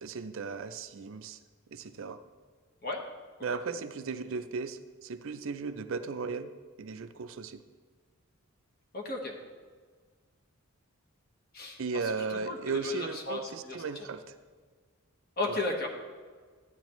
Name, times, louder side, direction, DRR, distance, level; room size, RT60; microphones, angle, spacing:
voice 1, 0.0-1.4 1.7-2.2 3.4-6.5 6.8-7.6 11.8-14.2 15.5-15.6, right 5 dB, 60° right, 10 dB, 0.4 m, -36 dB
voice 2, 8.9-9.3 11.5-11.8 12.3-13.8 15.4-15.9, left 2 dB, 45° left, 1 dB, 1.3 m, -34 dB
12.0 x 8.8 x 3.1 m, 1.5 s
head